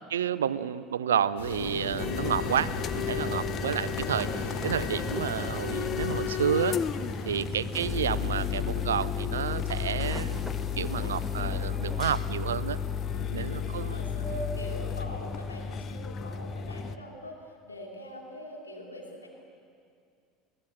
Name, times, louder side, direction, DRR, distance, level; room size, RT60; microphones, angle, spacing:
voice 1, 0.1-6.8 7.2-10.5 10.8-12.8 13.3-14.0, right 9 dB, 75° right, 17 dB, 0.5 m, -30 dB
sound 1, 1.4-8.5, left 3 dB, 70° left, 3.7 m, -37 dB
sound 2, 2.0-17.0, left 7 dB, 40° left, 0.8 m, -32 dB
voice 2, 3.1-3.5 7.1-7.4 13.1-19.3, equal, 85° left, -1 dB, 3.0 m, -42 dB
sound 3, 3.6-12.2, equal, 5° left, 1.4 m, -45 dB
22.0 x 16.5 x 7.8 m, 2.4 s
figure-of-eight pair, 70°, 0 cm